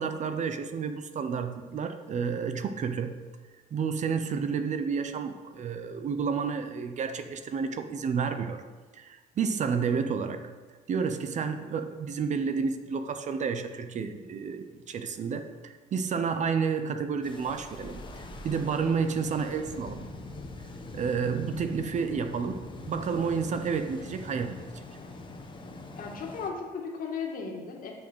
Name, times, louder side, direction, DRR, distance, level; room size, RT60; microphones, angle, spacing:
voice 1, 0.0-3.1 3.7-8.6 8.9-10.4 10.9-18.0 18.4-20.1 20.9-22.6 22.9-24.6, right 6 dB, 45° right, 8 dB, 0.8 m, -30 dB
sound 1, 17.2-26.5, left 2 dB, 30° left, 1.4 m, -43 dB
voice 2, 26.0-27.9, left 5 dB, 55° left, 0 dB, 2.2 m, -36 dB
9.1 x 6.4 x 6.3 m, 1.4 s
cardioid pair, 110°, 17 cm